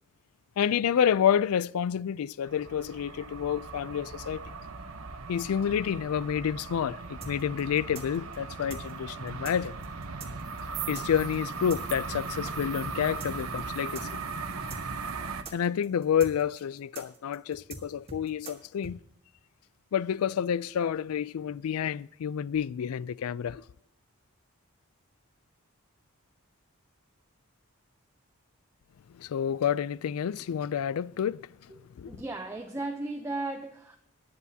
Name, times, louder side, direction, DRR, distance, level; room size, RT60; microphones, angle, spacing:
voice 1, 0.6-4.4 5.3-9.7 10.9-14.1 15.5-19.0 19.9-23.6 29.1-31.4 32.0-32.1, left 8 dB, 80° left, 0.3 m, -29 dB
sound 1, 2.4-15.4, right 4 dB, 75° right, 1.0 m, -38 dB
sound 2, 7.2-12.5 12.8-12.9 13.2-18.9, right 3 dB, 30° right, 1.6 m, -43 dB
voice 2, 32.1-34.0, right 2 dB, 10° right, 0.6 m, -35 dB
20.0 x 9.4 x 2.8 m
head